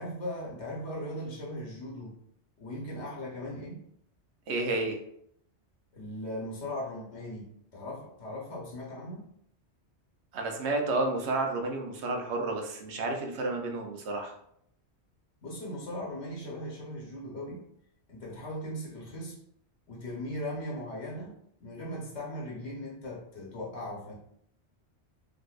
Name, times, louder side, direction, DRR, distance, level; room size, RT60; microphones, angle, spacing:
voice 1, 0.0-2.2 2.6-3.8 5.9-7.5 7.7-9.3 15.4-17.6 18.1-19.4 19.9-21.3 21.6-24.1, left 1 dB, 85° left, -3 dB, 1.2 m, -38 dB
voice 2, 4.5-5.0 10.3-14.3, right 2 dB, 80° right, 3 dB, 0.9 m, -31 dB
3.7 x 2.6 x 2.3 m, 0.69 s
omnidirectional pair, 1.1 m